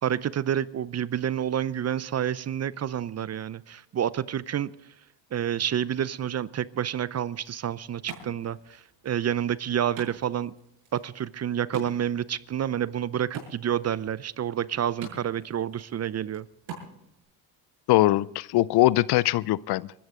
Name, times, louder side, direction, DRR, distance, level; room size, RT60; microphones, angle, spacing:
voice 1, 0.0-4.7 5.3-10.5 10.9-16.5, right 9 dB, 35° right, 0.6 m, -29 dB
Wood, 7.3-17.3, right 5 dB, 70° right, 6.9 m, -47 dB
voice 2, 17.9-19.9, left 17 dB, 55° left, 0.5 m, -22 dB
24.5 x 13.5 x 3.7 m
hypercardioid pair, 60°, 48 cm